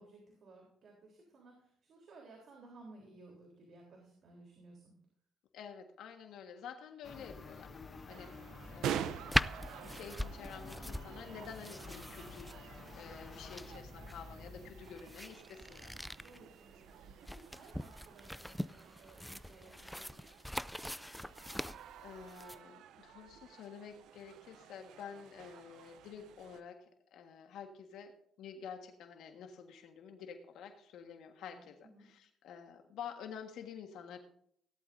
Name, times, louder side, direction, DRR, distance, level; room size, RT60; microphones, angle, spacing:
voice 1, 0.0-4.9 16.2-20.3 31.6-32.1, right 2 dB, 60° right, 0 dB, 3.8 m, -58 dB
voice 2, 5.5-8.3 8.7-9.5 9.8-15.9 21.6-34.2, left 7 dB, 85° left, 4 dB, 1.6 m, -50 dB
sound 1, 7.0-15.4, left 4 dB, 35° left, 1.4 m, -51 dB
sound 2, 8.1-26.6, right 9 dB, 85° right, 0.7 m, -48 dB
sound 3, 9.3-22.6, equal, 5° left, 0.4 m, -41 dB
17.5 x 12.0 x 2.7 m, 0.65 s
cardioid pair, 90°, 0 cm